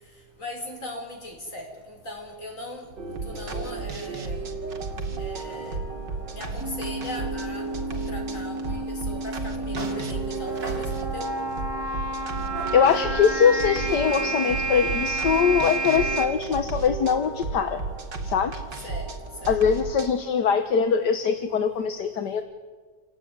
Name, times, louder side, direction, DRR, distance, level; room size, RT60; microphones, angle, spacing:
voice 1, 0.4-2.9 3.2-4.4 5.2-5.8 6.3-7.7 7.9-11.3 18.8-19.1 19.4-19.6, left 1 dB, 45° left, 1 dB, 5.9 m, -39 dB
sound 1, 3.0-20.2, right 3 dB, 85° right, 3.0 m, -33 dB
sound 2, 6.5-7.9 8.7-8.8 9.2-9.3 9.8-11.3 12.3-14.6, right 2 dB, 60° right, 7.0 m, -39 dB
sound 3, 6.6-16.2, right 2 dB, 15° right, 3.2 m, -31 dB
voice 2, 12.7-17.8 18.2-18.6 19.5-22.4, left 7 dB, 75° left, 8 dB, 1.8 m, -22 dB
27.5 x 18.0 x 9.6 m, 1.4 s
omnidirectional pair, 1.9 m